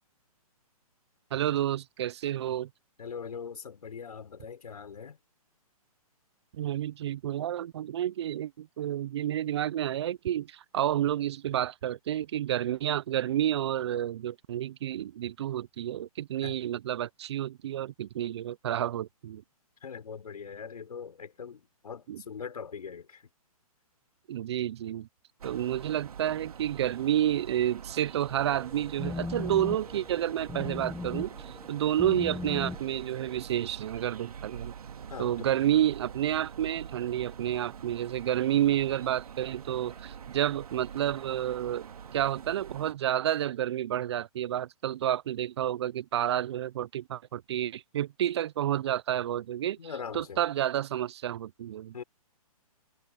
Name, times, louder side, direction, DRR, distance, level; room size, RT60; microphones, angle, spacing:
voice 1, 1.3-2.7 6.5-19.4 22.1-22.2 24.3-25.1 25.4-34.7 35.2-41.9 42.1-49.8 50.1-51.9, right 11 dB, 45° right, 0.5 m, -30 dB
voice 2, 3.0-5.2 16.4-16.6 19.8-23.2 35.1-35.6 49.8-50.4 51.9-52.0, left 6 dB, 80° left, 6.4 m, -41 dB
sound 1, 25.4-42.9, right 7 dB, 70° right, 2.2 m, -45 dB
sound 2, 28.3-33.5, left 3 dB, 5° left, 1.2 m, -39 dB
hypercardioid pair, 150°, 19 cm